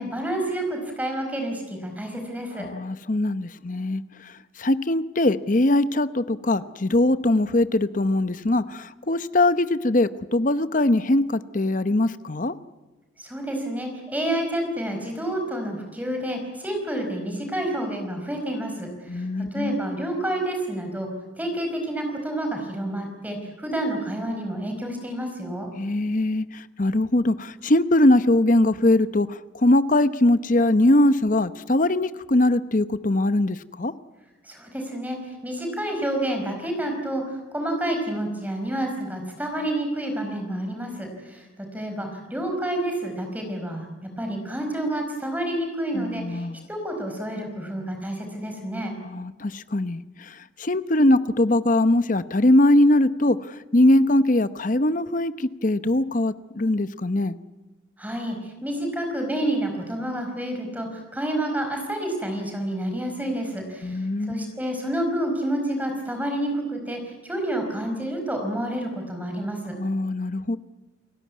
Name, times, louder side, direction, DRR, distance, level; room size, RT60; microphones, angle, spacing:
voice 1, 0.0-2.7 13.2-21.1 21.4-25.7 34.4-43.9 44.2-48.9 58.0-69.8, right 1 dB, 10° right, 3 dB, 4.8 m, -29 dB
voice 2, 2.6-12.5 19.1-19.8 25.8-33.9 45.9-46.7 49.0-57.4 63.8-64.5 69.8-70.6, left 1 dB, 40° left, 13 dB, 0.8 m, -21 dB
29.5 x 17.0 x 9.5 m, 1.2 s
head